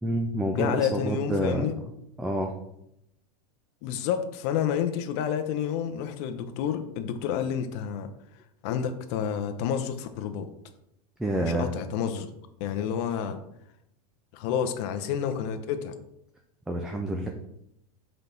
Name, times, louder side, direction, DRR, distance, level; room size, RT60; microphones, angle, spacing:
voice 1, 0.0-1.7 2.2-2.6 11.2-11.7 16.7-17.3, right 1 dB, 5° right, 2 dB, 0.4 m, -28 dB
voice 2, 0.5-1.8 3.8-8.1 8.6-10.5 11.4-12.3 12.6-13.4 14.3-15.9, left 8 dB, 50° left, 8 dB, 0.7 m, -29 dB
5.2 x 4.0 x 5.7 m, 0.80 s
supercardioid pair, 140°, 19 cm